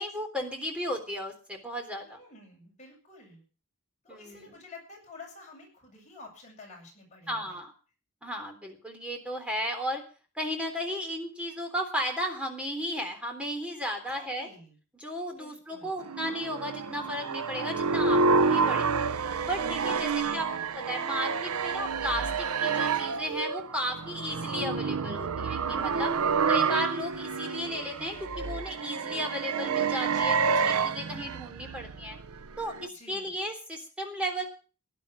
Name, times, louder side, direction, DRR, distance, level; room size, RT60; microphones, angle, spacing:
voice 1, 0.0-2.2 4.1-4.5 7.3-7.7 8.2-10.0 10.4-14.5 14.9-19.1 19.4-20.5 20.7-26.2 26.5-32.2 32.6-34.4, equal, 5° right, 3 dB, 3.6 m, -34 dB
voice 2, 2.0-3.4 4.0-7.6 14.1-14.7 15.3-16.0 19.8-21.0 25.6-26.6 30.1-31.0 32.9-33.3, left 2 dB, 30° left, -1 dB, 7.8 m, -50 dB
sound 1, 16.0-32.9, right 5 dB, 85° right, 0.7 m, -29 dB
Alarm, 25.8-28.7, right 5 dB, 50° right, 6.0 m, -55 dB
17.0 x 11.5 x 6.2 m, 0.39 s
head